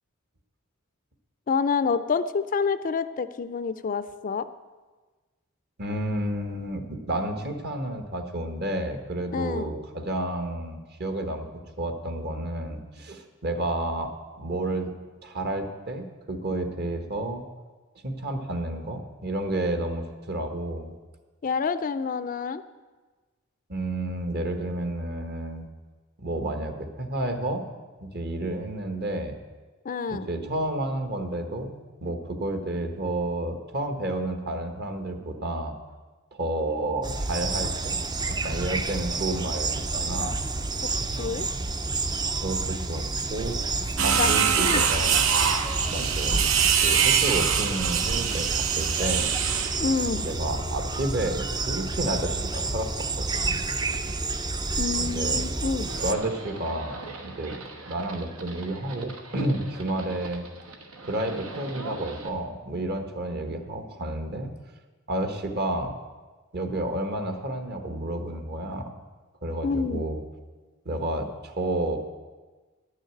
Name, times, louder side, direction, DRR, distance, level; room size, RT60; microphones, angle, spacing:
voice 1, 1.5-4.5 9.3-9.8 21.4-22.6 29.8-30.3 40.8-41.5 44.2-44.3 44.6-44.8 49.8-50.2 54.8-55.9 69.6-70.0, left 5 dB, 40° left, 13 dB, 0.4 m, -28 dB
voice 2, 5.8-11.4 11.8-14.1 14.4-14.9 15.2-17.4 18.0-20.9 23.7-25.7 26.2-27.6 28.0-29.3 30.1-35.7 36.3-38.0 38.3-40.4 42.4-43.0 43.3-45.2 45.9-46.4 46.8-49.3 50.2-52.9 53.2-53.5 55.0-55.4 56.0-57.5 57.8-60.4 61.0-64.5 65.1-66.0 66.5-68.9 69.4-70.2 70.8-72.0, right 1 dB, 50° right, 6 dB, 1.3 m, -30 dB
sound 1, 37.0-56.1, right 3 dB, 20° right, 0.4 m, -29 dB
sound 2, 44.0-49.8, right 7 dB, 70° right, 0.7 m, -24 dB
Livestock farm animals working animals, 55.9-62.3, right 2 dB, 90° right, 1.2 m, -41 dB
11.0 x 6.5 x 8.9 m, 1.3 s
head